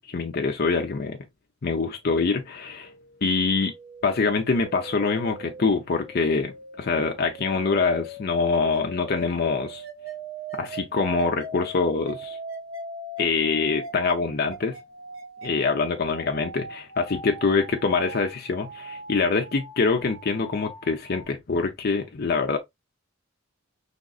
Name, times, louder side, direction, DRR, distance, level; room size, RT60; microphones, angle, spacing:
voice 1, 0.1-1.2 1.6-2.9 3.2-3.7 4.0-9.8 10.5-12.4 13.2-14.8 15.4-22.6, left 4 dB, 50° left, 0.6 m, -25 dB
sound 1, 2.1-21.2, right 2 dB, 85° right, 1.7 m, -41 dB
5.2 x 3.5 x 2.4 m
head